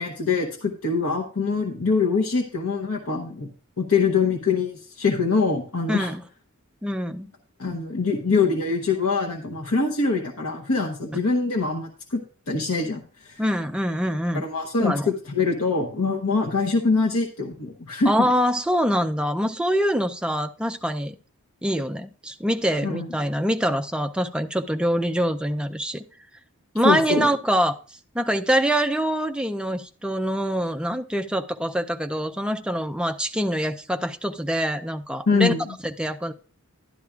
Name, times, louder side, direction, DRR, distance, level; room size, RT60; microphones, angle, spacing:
voice 1, 0.0-3.5 3.8-6.1 7.6-13.4 14.3-18.1 22.8-23.1 26.8-27.3 35.3-35.6, left 4 dB, 75° left, -1 dB, 1.0 m, -24 dB
voice 2, 5.9-6.2 6.8-7.3 13.4-14.4 14.8-15.1 18.1-21.2 21.6-26.0 26.7-27.7 28.1-35.5 36.0-36.3, equal, 5° right, 6 dB, 0.3 m, -24 dB
12.0 x 10.0 x 2.4 m, 0.39 s
head